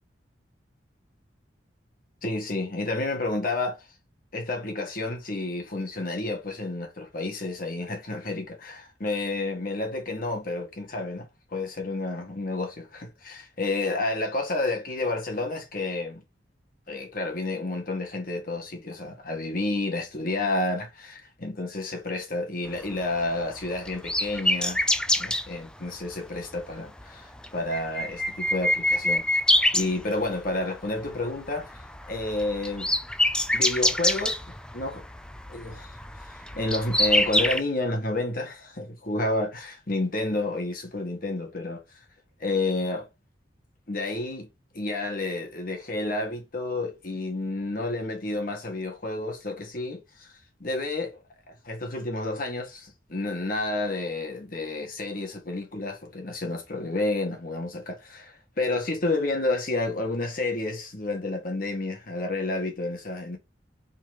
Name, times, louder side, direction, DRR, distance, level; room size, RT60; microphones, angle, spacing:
voice 1, 2.2-3.8 4.3-16.2 16.9-24.8 25.2-29.3 29.7-32.9 33.5-35.0 35.5-35.9 36.5-41.8 42.4-43.1 43.9-44.5 44.7-50.3 50.6-51.2 51.6-63.4, left 2 dB, 50° left, 1.8 m, -30 dB
sound 1, 22.9-25.5 26.4-26.6 27.0-27.1 27.4-30.5 30.9-31.2 31.5-37.6, left 1 dB, 5° left, 0.4 m, -25 dB
4.6 x 4.4 x 5.3 m
head